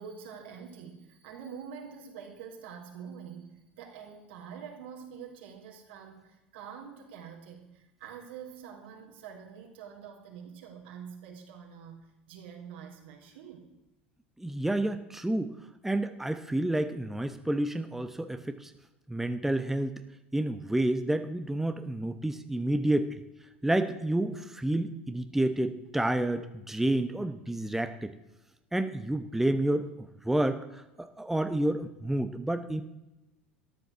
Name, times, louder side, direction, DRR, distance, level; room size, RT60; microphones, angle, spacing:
voice 1, 0.0-13.7, right 7 dB, 70° right, 0 dB, 4.0 m, -46 dB
voice 2, 14.4-15.5 15.8-18.7 19.1-20.0 20.3-23.2 23.6-28.1 28.7-32.8, right 1 dB, 5° right, 8 dB, 1.0 m, -29 dB
13.5 x 10.5 x 6.9 m, 0.99 s
hypercardioid pair, 80°, 6 cm